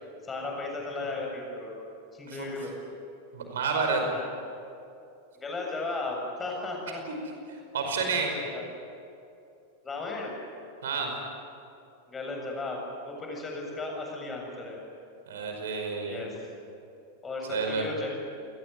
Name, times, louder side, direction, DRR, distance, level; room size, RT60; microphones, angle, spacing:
voice 1, 0.2-1.7 2.1-2.8 4.0-4.3 5.4-7.0 8.0-8.6 9.8-10.3 12.1-14.8 16.1-16.3 17.2-18.1, left 2 dB, 15° left, 0 dB, 7.8 m, -35 dB
voice 2, 3.3-4.0 7.1-7.2 7.5-8.3 10.8-11.1 15.3-16.2 17.5-17.9, right 5 dB, 60° right, 3 dB, 5.1 m, -30 dB
28.5 x 20.0 x 9.5 m, 2.6 s
figure-of-eight pair, 90°, 0 cm